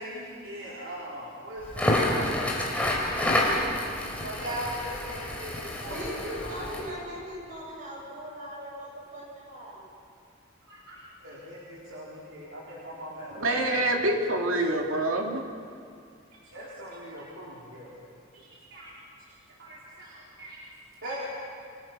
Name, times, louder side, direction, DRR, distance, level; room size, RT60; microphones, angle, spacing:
voice 1, 0.0-3.0 4.2-6.8 10.7-13.9 14.2-14.7 16.3-17.9 18.3-18.9 19.6-20.6 20.9-21.2, equal, 65° right, -6 dB, 4.4 m, -40 dB
Crackle, 1.6-6.9, left 1 dB, 5° left, 4.1 m, -28 dB
voice 2, 5.9-9.8, equal, 40° right, -4 dB, 7.9 m, -39 dB
voice 3, 13.4-15.4, right 1 dB, 85° right, 1 dB, 2.9 m, -26 dB
30.0 x 25.0 x 6.3 m, 2.4 s
head